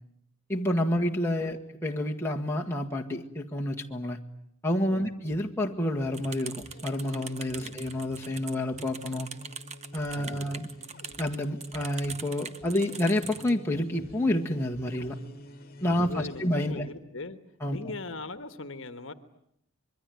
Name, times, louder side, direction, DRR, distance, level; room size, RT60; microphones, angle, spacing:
voice 1, 0.5-4.2 4.6-9.3 9.9-10.7 11.2-15.2 15.8-16.9 17.6-17.8, left 1 dB, 10° left, 0 dB, 1.8 m, -29 dB
sound 1, 5.8-16.8, left 1 dB, 45° left, 2.3 m, -48 dB
sound 2, 6.1-13.5, right 6 dB, 30° right, 1.1 m, -42 dB
voice 2, 10.2-10.6 15.9-17.4 17.7-19.1, left 3 dB, 60° left, 11 dB, 1.4 m, -40 dB
26.0 x 22.5 x 9.5 m, 0.74 s
head